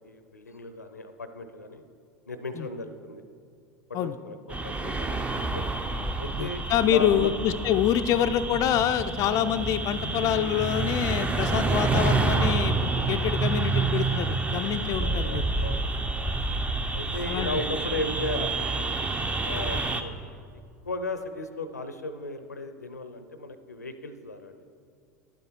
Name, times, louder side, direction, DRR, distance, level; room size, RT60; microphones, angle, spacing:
voice 1, 0.0-1.8 2.3-3.2 4.0-5.7 6.2-7.3 11.6-11.9 15.0-16.0 16.9-19.0 19.4-20.1 20.9-24.6, left 2 dB, 85° left, 10 dB, 0.6 m, -35 dB
sound 1, 4.5-20.0, right 3 dB, 15° right, 0.6 m, -28 dB
voice 2, 6.4-15.5 17.3-17.6 19.7-19.8, left 10 dB, 40° left, 9 dB, 0.4 m, -26 dB
11.0 x 7.8 x 4.6 m, 2.3 s
figure-of-eight pair, 80°, 9 cm